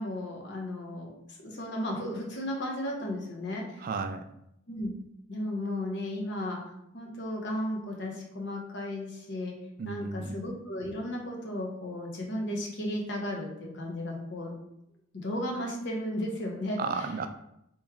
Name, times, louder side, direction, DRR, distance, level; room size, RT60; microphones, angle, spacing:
voice 1, 0.0-3.9 4.7-4.9 5.3-6.6 6.9-9.5 9.8-14.5 15.1-17.1, left 1 dB, 65° left, 0 dB, 0.9 m, -34 dB
voice 2, 3.8-4.2 9.8-10.4 16.8-17.3, right 4 dB, 45° right, 8 dB, 0.3 m, -33 dB
3.1 x 3.0 x 3.6 m, 0.78 s
head